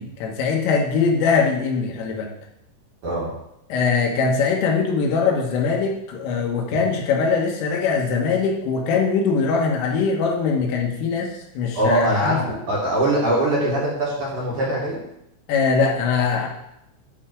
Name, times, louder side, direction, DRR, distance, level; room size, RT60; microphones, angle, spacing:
voice 1, 0.0-2.3 3.7-12.4 15.5-16.5, left 5 dB, 90° left, 0 dB, 4.0 m, -22 dB
voice 2, 11.8-15.0, right 1 dB, 45° right, -6 dB, 3.3 m, -22 dB
11.0 x 4.5 x 6.4 m, 0.80 s
omnidirectional pair, 5.7 m